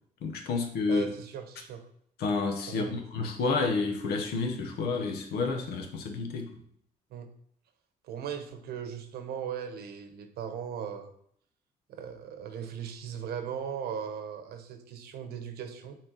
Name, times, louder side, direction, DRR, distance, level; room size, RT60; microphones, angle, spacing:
voice 1, 0.2-1.1 2.2-6.5, left 4 dB, 85° left, 1.1 m, -30 dB
voice 2, 0.9-1.8 2.7-3.0 7.1-7.3 8.0-11.1 11.9-16.0, right 8 dB, 85° right, 0.9 m, -38 dB
6.3 x 4.3 x 4.0 m
cardioid pair, 115°, 16 cm